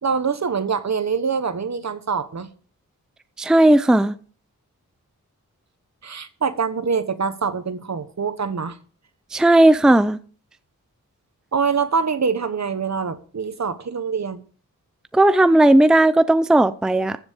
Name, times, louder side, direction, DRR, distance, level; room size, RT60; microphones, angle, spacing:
voice 1, 0.0-2.5 6.0-8.8 11.5-14.4, right 5 dB, 60° right, 1.2 m, -24 dB
voice 2, 3.4-4.2 9.3-10.2 15.1-17.2, right 1 dB, ahead, 0.5 m, -15 dB
14.5 x 7.3 x 5.2 m
wide cardioid pair, 110°, 32 cm